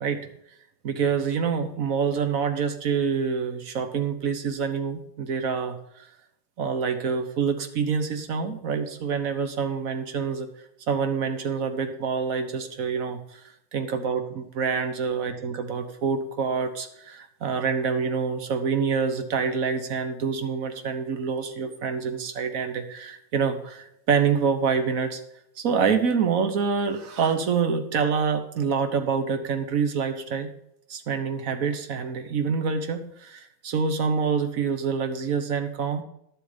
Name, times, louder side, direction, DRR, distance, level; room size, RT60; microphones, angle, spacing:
voice 1, 0.8-5.8 6.6-10.5 10.9-13.2 13.7-25.2 25.6-30.5 30.9-36.0, right 6 dB, 45° right, 8 dB, 1.4 m, -26 dB
11.5 x 8.0 x 5.1 m, 0.77 s
omnidirectional pair, 2.2 m